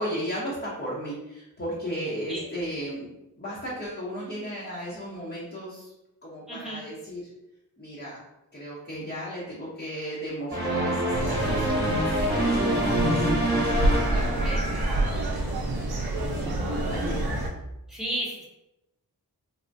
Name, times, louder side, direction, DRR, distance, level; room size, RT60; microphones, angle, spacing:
voice 1, 0.0-5.9 6.2-7.3 7.8-8.2 8.5-14.6 16.3-17.4, equal, 25° left, -7 dB, 0.7 m, -35 dB
voice 2, 6.5-6.8 14.1-14.6 17.9-18.5, right 1 dB, ahead, -5 dB, 0.9 m, -33 dB
sound 1, 10.5-15.0, right 1 dB, 25° right, 0.9 m, -26 dB
sound 2, 11.1-17.5, right 1 dB, 75° right, 0.6 m, -27 dB
3.3 x 2.1 x 2.5 m, 0.91 s
wide cardioid pair, 70°, 38 cm